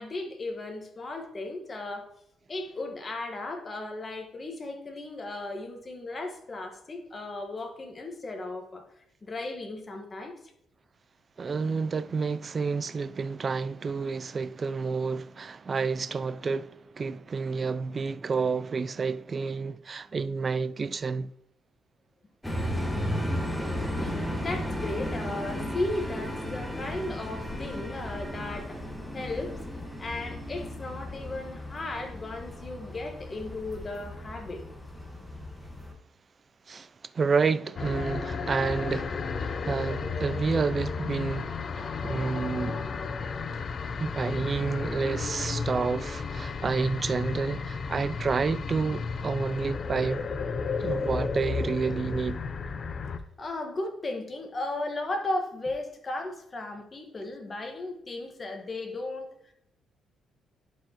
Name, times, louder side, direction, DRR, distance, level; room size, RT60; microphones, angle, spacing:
voice 1, 0.0-2.1 2.5-8.8 9.2-10.4 24.0-28.8 29.1-29.5 30.0-34.6 53.4-59.5, left 2 dB, 30° left, 1.4 m, -35 dB
voice 2, 11.4-21.3 36.7-36.9 37.1-42.8 44.0-50.2 50.8-52.4, right 4 dB, 40° right, 0.3 m, -30 dB
sound 1, 22.4-35.9, equal, 5° left, 1.4 m, -35 dB
sound 2, 37.8-53.2, left 5 dB, 50° left, 0.6 m, -33 dB
11.5 x 4.6 x 3.0 m
cardioid pair, 90°, 0 cm